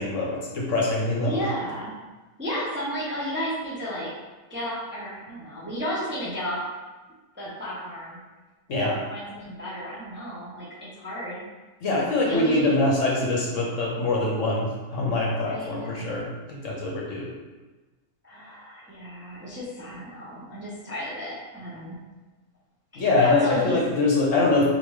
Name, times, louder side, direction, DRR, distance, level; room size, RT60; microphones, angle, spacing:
voice 1, 0.0-1.3 8.7-8.9 11.8-17.3 22.9-24.7, left 2 dB, 60° left, -3 dB, 1.1 m, -24 dB
voice 2, 1.2-1.9 2.4-4.1 4.5-6.6 7.3-8.2 8.7-11.4 12.3-12.7 15.4-16.2 18.2-22.0 22.9-23.8, equal, 10° right, -7 dB, 0.8 m, -33 dB
4.5 x 3.7 x 3.2 m, 1.2 s
omnidirectional pair, 1.6 m